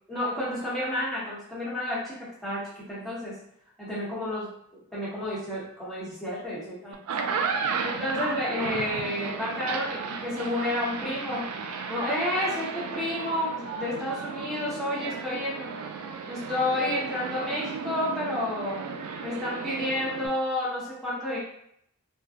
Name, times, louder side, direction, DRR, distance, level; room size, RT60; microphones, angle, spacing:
voice 1, 0.1-3.4 3.8-4.5 4.9-7.0 7.8-11.5 11.9-15.7 16.3-18.8 19.2-21.4, left 1 dB, ahead, -9 dB, 0.9 m, -30 dB
sound 1, 6.9-20.3, right 5 dB, 80° right, 0.3 m, -34 dB
2.6 x 2.1 x 2.4 m, 0.71 s
head